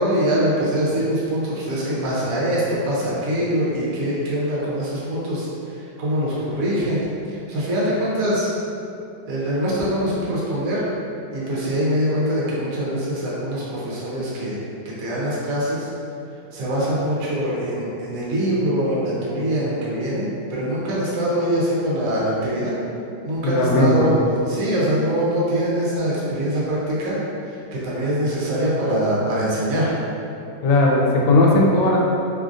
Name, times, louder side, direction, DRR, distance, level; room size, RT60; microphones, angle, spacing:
voice 1, 0.0-5.5 6.0-8.5 9.3-10.8 11.3-14.6 14.8-15.9 16.5-22.7 23.2-24.2 24.5-27.2 27.7-29.9, equal, 60° right, -7 dB, 1.0 m, -23 dB
voice 2, 23.4-24.1 30.6-32.0, left 2 dB, 85° left, -2 dB, 1.3 m, -17 dB
3.1 x 2.4 x 2.5 m, 2.7 s
omnidirectional pair, 1.9 m